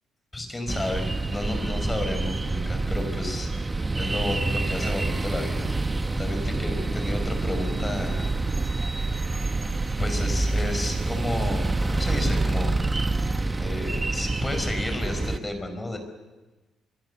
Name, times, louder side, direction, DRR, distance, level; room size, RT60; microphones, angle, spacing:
voice 1, 0.3-3.5 4.0-8.3 9.0-9.1 10.0-12.7 13.6-16.0, left 2 dB, 20° left, 6 dB, 5.5 m, -32 dB
sound 1, 0.7-15.4, right 3 dB, 20° right, 1.4 m, -27 dB
26.0 x 23.0 x 7.0 m, 1.2 s
cardioid pair, 90°, 0 cm